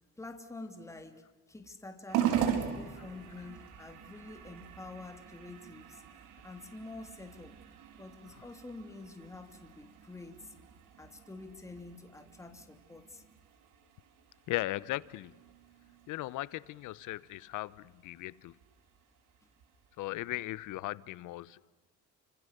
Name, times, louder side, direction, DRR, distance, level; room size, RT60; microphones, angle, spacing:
voice 1, 0.1-6.2 6.4-7.6 8.0-10.5 11.0-13.2, left 2 dB, 10° left, 2.9 m, -48 dB
sound 1, 2.1-20.7, right 9 dB, 90° right, 4.1 m, -41 dB
voice 2, 14.5-15.4 16.1-18.5 20.0-21.6, left 17 dB, 80° left, 1.0 m, -37 dB
29.5 x 26.5 x 6.8 m
cardioid pair, 120°, 30 cm